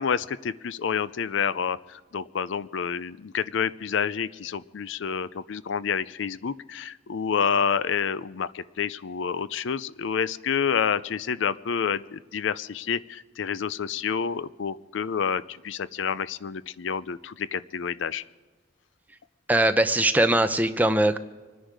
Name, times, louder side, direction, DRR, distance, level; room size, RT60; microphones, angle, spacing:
voice 1, 0.0-18.2, left 7 dB, 70° left, 17 dB, 0.4 m, -28 dB
voice 2, 19.5-21.2, right 1 dB, 10° right, 9 dB, 0.6 m, -21 dB
25.5 x 10.0 x 4.9 m, 1.3 s
head